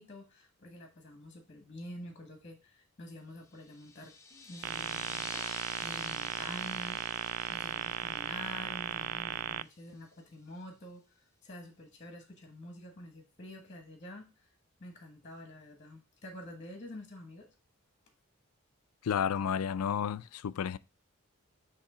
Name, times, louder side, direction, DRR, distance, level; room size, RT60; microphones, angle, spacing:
voice 1, 0.0-5.3 5.8-11.0 11.4-14.5 14.8-17.5, left 1 dB, 35° left, 1.3 m, -48 dB
sound 1, 3.5-9.8, left 4 dB, 15° left, 0.7 m, -49 dB
sound 2, 4.6-9.6, right 11 dB, 70° right, 0.3 m, -36 dB
voice 2, 19.0-20.8, left 7 dB, 85° left, 0.4 m, -31 dB
7.1 x 3.2 x 4.9 m
head